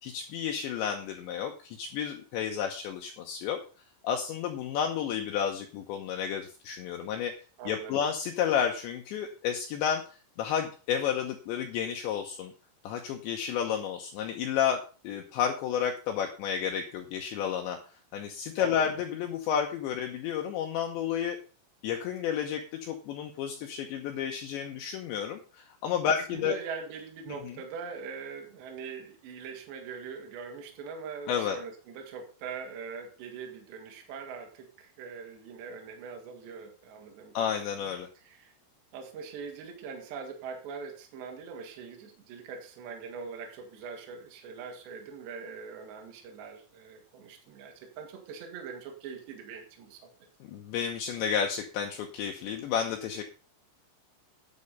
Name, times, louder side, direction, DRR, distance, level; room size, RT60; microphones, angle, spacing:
voice 1, 0.0-3.6 4.0-7.3 7.7-12.5 12.8-17.8 18.1-21.4 21.8-26.6 27.4-27.5 31.3-31.6 37.3-38.1 50.4-53.2, left 8 dB, 75° left, 3 dB, 3.0 m, -31 dB
voice 2, 7.6-8.0 18.6-18.9 26.0-38.5 38.9-50.1, right 5 dB, 65° right, 3 dB, 3.9 m, -42 dB
9.7 x 8.6 x 5.4 m, 0.36 s
omnidirectional pair, 5.8 m